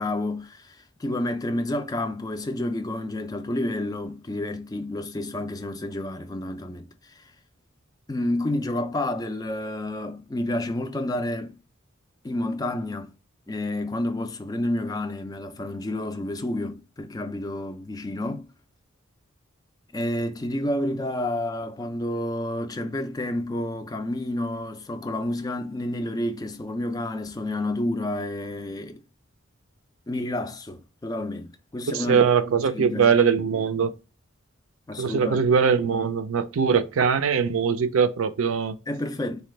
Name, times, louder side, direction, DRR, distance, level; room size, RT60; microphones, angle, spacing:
voice 1, 0.0-7.3 8.1-11.6 12.2-13.1 13.5-18.5 19.9-29.0 30.1-32.3 32.6-33.6 34.9-35.4 38.9-39.4, left 1 dB, 20° left, 0.3 m, -30 dB
voice 2, 31.9-33.9 35.0-38.8, right 6 dB, 80° right, 0.4 m, -21 dB
4.1 x 2.3 x 3.1 m
head